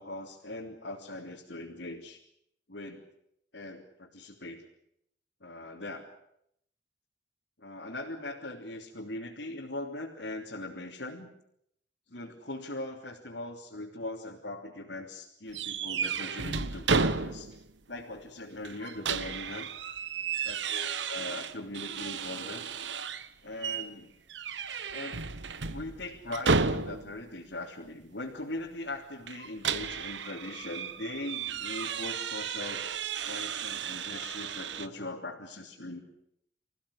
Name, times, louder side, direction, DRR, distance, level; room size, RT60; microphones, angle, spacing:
voice 1, 0.0-2.2 2.7-3.0 3.5-4.7 5.4-6.1 7.6-11.3 12.1-17.5 17.9-19.7 20.4-22.7 23.4-24.1 24.9-25.2 25.7-32.9 33.2-36.0, left 2 dB, 65° left, -2 dB, 3.2 m, -40 dB
sound 1, 15.5-17.7 18.0-18.1 18.6-23.3 23.6-23.9 24.3-27.2 29.3-34.9, right 5 dB, 75° right, 1.2 m, -33 dB
26.5 x 16.0 x 10.0 m, 0.75 s
head